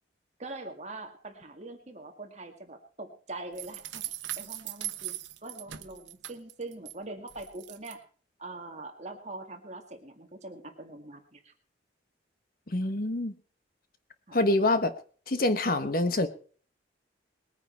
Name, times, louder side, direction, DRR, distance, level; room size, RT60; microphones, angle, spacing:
voice 1, 0.4-8.0 8.4-11.5 14.3-14.4, right 2 dB, 40° right, 4 dB, 2.0 m, -43 dB
sound 1, 3.6-6.9 7.3-8.0, right 14 dB, 80° right, 1.0 m, -39 dB
voice 2, 12.7-13.3 14.3-14.9 15.3-16.3, left 2 dB, 50° left, 10 dB, 1.1 m, -26 dB
20.5 x 9.6 x 4.5 m, 0.42 s
head